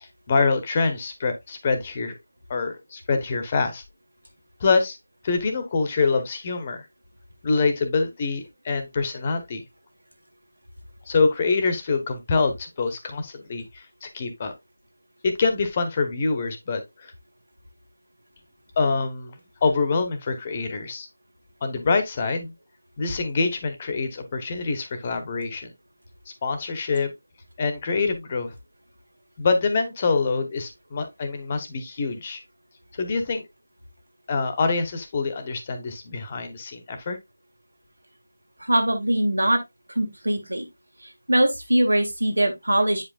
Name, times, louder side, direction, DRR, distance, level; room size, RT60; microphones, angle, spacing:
voice 1, 0.0-2.1 2.5-3.8 4.6-5.0 5.2-6.8 7.4-9.6 11.1-14.5 15.2-17.1 18.8-19.3 19.6-21.1 21.6-22.5 23.0-25.7 26.4-27.1 27.6-28.5 29.4-32.4 33.0-33.4 34.3-37.2, left 4 dB, 30° left, 1.1 m, -25 dB
voice 2, 38.6-39.6 39.9-40.6 41.0-43.0, right 1 dB, 90° right, 1.9 m, -22 dB
8.2 x 5.1 x 2.4 m
figure-of-eight pair, 165°, 0 cm